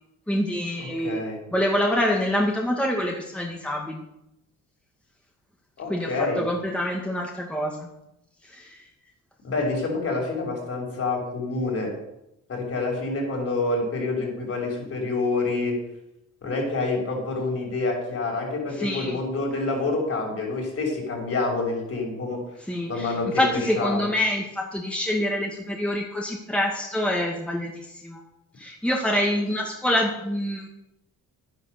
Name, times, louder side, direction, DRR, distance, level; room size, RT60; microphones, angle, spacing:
voice 1, 0.3-1.2 1.5-4.0 5.9-7.9 8.5-8.8 18.8-19.2 22.7-28.2 28.6-30.7, left 1 dB, 5° left, 0 dB, 2.2 m, -26 dB
voice 2, 0.8-1.4 5.8-6.5 9.4-11.9 12.5-15.8 16.4-22.4 22.9-24.1, left 3 dB, 50° left, 0 dB, 6.5 m, -27 dB
11.0 x 10.5 x 6.9 m, 0.85 s
cardioid pair, 90°, 30 cm